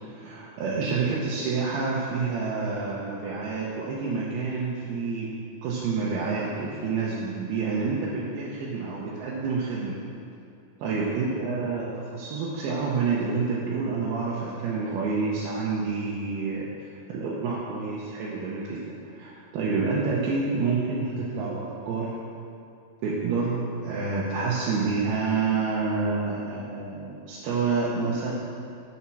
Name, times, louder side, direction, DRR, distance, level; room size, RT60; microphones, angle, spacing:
voice 1, 0.0-5.3 5.6-10.0 10.8-22.2 23.0-28.3, right 4 dB, 80° right, -6 dB, 2.9 m, -28 dB
7.4 x 7.2 x 6.0 m, 2.5 s
omnidirectional pair, 4.4 m